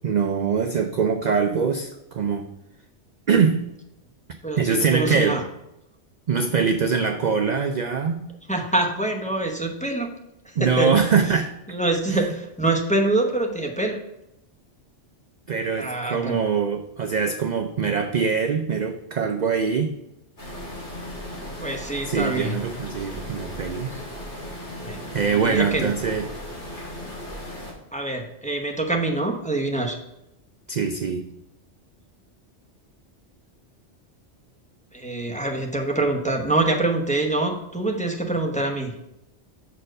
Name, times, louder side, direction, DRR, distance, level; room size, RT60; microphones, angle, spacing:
voice 1, 0.0-2.5 3.3-3.6 4.6-5.4 6.3-8.3 10.6-11.5 12.1-12.3 15.5-19.9 22.1-23.9 25.1-26.2 30.7-31.3, right 5 dB, 50° right, 6 dB, 0.5 m, -23 dB
voice 2, 4.4-5.4 8.5-10.1 10.4-10.9 11.7-14.0 15.8-16.4 21.4-22.6 24.8-25.9 27.9-30.0 34.9-38.9, right 2 dB, 5° left, 2 dB, 0.8 m, -25 dB
sound 1, 20.4-27.7, left 1 dB, 70° left, 2.7 m, -36 dB
6.4 x 4.4 x 6.4 m, 0.86 s
omnidirectional pair, 1.2 m